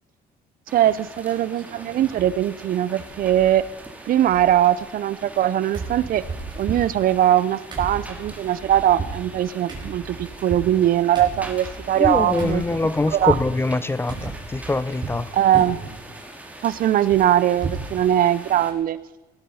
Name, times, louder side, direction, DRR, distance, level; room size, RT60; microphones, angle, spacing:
sound 1, 0.7-18.7, right 1 dB, 10° right, 2.7 m, -42 dB
voice 1, 0.7-3.6 4.1-6.2 6.6-12.6 13.1-13.4 15.3-15.8 16.6-19.0, right 11 dB, 60° right, 0.7 m, -20 dB
sound 2, 0.8-1.2 1.5-2.3 2.6-2.7 3.0-3.8 4.1-5.5 5.7-13.5 14.1-15.2 15.5-16.0 16.3-17.9 18.3-18.4 18.7-18.9, right 4 dB, 25° right, 5.1 m, -34 dB
voice 2, 12.0-15.3, left 2 dB, 15° left, 0.5 m, -24 dB
17.5 x 12.0 x 5.6 m
cardioid pair, 110°, 17 cm